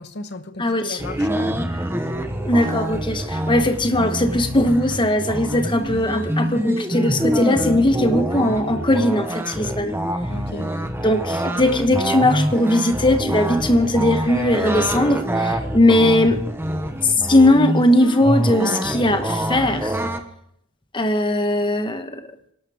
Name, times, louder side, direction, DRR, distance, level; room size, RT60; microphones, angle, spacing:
voice 1, 0.0-1.6 10.3-10.7, left 2 dB, 50° left, 1.0 m, -35 dB
voice 2, 0.6-1.0 2.4-9.9 11.0-16.4 17.0-20.0 20.9-22.2, left 1 dB, 20° left, 1.1 m, -19 dB
sound 1, 1.0-20.2, right 1 dB, 10° right, 0.9 m, -25 dB
24.5 x 12.0 x 3.5 m
head